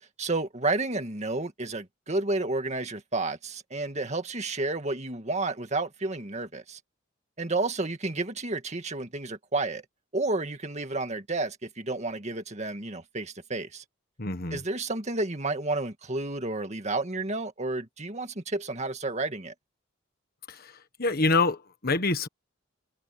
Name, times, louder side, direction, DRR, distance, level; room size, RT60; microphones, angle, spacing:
voice 1, 0.2-6.8 7.4-9.8 10.1-13.8 14.5-19.5, right 2 dB, 35° right, 2.0 m, -31 dB
voice 2, 14.2-14.6 20.5-20.7 21.0-22.3, left 3 dB, 50° left, 1.5 m, -26 dB
head